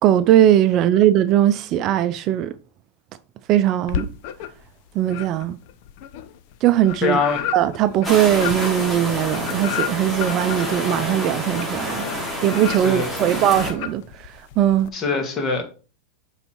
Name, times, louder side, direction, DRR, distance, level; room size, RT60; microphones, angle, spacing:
voice 1, 0.0-2.5 3.5-4.1 4.9-5.6 6.6-7.2 7.5-14.9, right 11 dB, 40° right, 0.5 m, -19 dB
sound 1, 3.9-4.7 5.1-14.9, left 10 dB, 55° left, 0.8 m, -32 dB
voice 2, 7.0-7.4 12.7-13.4 14.9-15.6, left 4 dB, 30° left, 2.1 m, -23 dB
sound 2, 8.0-13.7, equal, 5° left, 3.9 m, -28 dB
7.9 x 4.1 x 4.6 m
hypercardioid pair, 115°, 0 cm